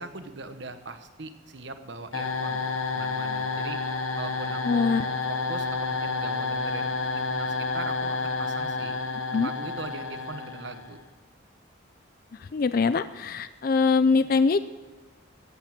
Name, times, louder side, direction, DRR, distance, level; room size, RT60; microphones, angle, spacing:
voice 1, 0.0-3.8 4.2-9.0 9.4-11.0, right 3 dB, 60° right, 9 dB, 1.1 m, -40 dB
sound 1, 2.1-11.0, left 4 dB, 85° left, 1.1 m, -30 dB
voice 2, 4.6-5.1 9.3-9.5 12.5-14.6, left 4 dB, 45° left, 13 dB, 0.4 m, -23 dB
15.0 x 8.2 x 7.5 m, 1.3 s
head